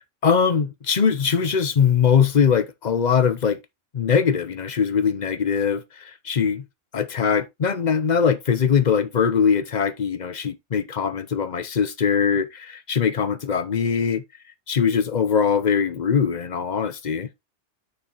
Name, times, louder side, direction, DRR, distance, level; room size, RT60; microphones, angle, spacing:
voice 1, 0.2-3.6 3.9-6.6 6.9-14.2 14.7-17.3, left 6 dB, 45° left, 0.7 m, -21 dB
6.6 x 6.1 x 3.0 m
omnidirectional pair, 1.2 m